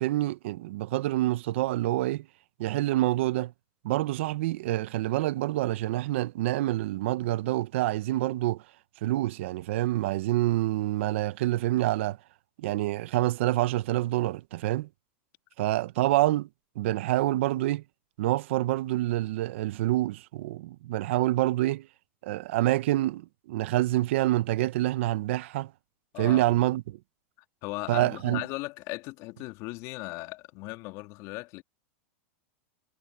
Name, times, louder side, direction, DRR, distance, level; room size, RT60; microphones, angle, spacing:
voice 1, 0.0-2.3 2.6-3.5 3.8-8.6 9.0-12.2 12.6-14.9 15.6-16.5 16.7-17.8 18.2-21.9 22.2-25.7 26.2-26.8 27.9-28.4, right 16 dB, 70° right, 1.0 m, -27 dB
voice 2, 26.1-26.6 27.6-31.6, left 22 dB, 50° left, 2.9 m, -37 dB
supercardioid pair, 130°, 7 cm